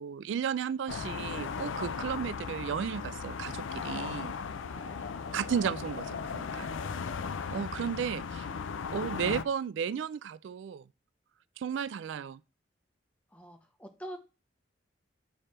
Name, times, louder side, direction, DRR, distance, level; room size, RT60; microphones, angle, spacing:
voice 1, 0.0-4.3 5.3-6.7 7.5-8.5 8.9-10.8 11.6-12.4, right 7 dB, 75° right, 0.3 m, -34 dB
sound 1, 0.9-9.4, left 5 dB, 90° left, 0.5 m, -37 dB
voice 2, 4.7-5.3 7.0-7.5 13.3-14.2, equal, 5° left, 0.9 m, -47 dB
9.5 x 3.4 x 4.3 m
head